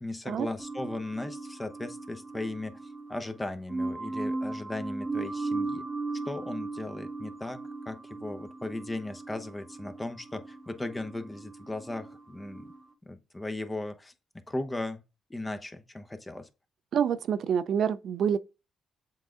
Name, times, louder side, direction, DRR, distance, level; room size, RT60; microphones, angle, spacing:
voice 1, 0.0-2.8 3.1-5.8 6.3-12.7 13.0-14.1 14.5-15.0 15.3-16.5, left 2 dB, 15° left, 0.9 m, -37 dB
sound 1, 0.6-12.8, right 3 dB, 15° right, 1.0 m, -37 dB
voice 2, 16.9-18.4, right 8 dB, 60° right, 0.5 m, -27 dB
7.5 x 3.8 x 3.6 m
cardioid pair, 90°, 0 cm